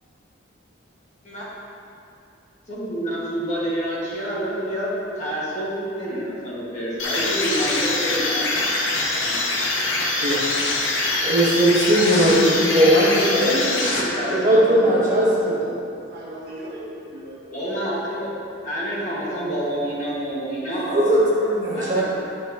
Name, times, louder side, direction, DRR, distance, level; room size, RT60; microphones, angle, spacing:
voice 1, 2.7-8.7 9.2-9.4 11.9-13.4 14.0-14.9 17.5-18.3 18.6-21.2 21.7-22.0, equal, 40° left, -8 dB, 1.8 m, -28 dB
sound 1, 7.0-14.5, left 2 dB, 80° left, 1.0 m, -24 dB
voice 2, 11.2-13.4 14.3-15.6 20.8-22.0, equal, 40° right, -8 dB, 1.9 m, -18 dB
voice 3, 13.3-15.0 15.5-15.7 16.1-17.7, equal, 55° right, -6 dB, 1.5 m, -32 dB
10.5 x 6.4 x 2.9 m, 2.6 s
head